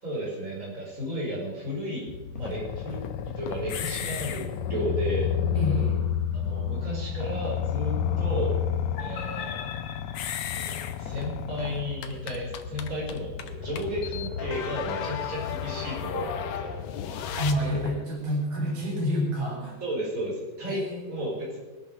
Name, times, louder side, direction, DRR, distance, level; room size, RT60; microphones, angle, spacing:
voice 1, 0.0-5.3 6.3-8.5 9.0-9.7 10.5-16.7 19.8-21.6, equal, 25° right, -4 dB, 5.5 m, -33 dB
sound 1, 2.1-17.9, left 8 dB, 65° left, 2.0 m, -32 dB
sound 2, 2.4-6.2 7.2-12.2 13.6-18.1, left 11 dB, 90° left, 1.5 m, -39 dB
voice 2, 5.5-6.0 17.4-19.8 20.6-21.1, equal, 75° right, 0 dB, 5.0 m, -28 dB
21.5 x 8.7 x 6.9 m, 1.2 s
omnidirectional pair, 3.8 m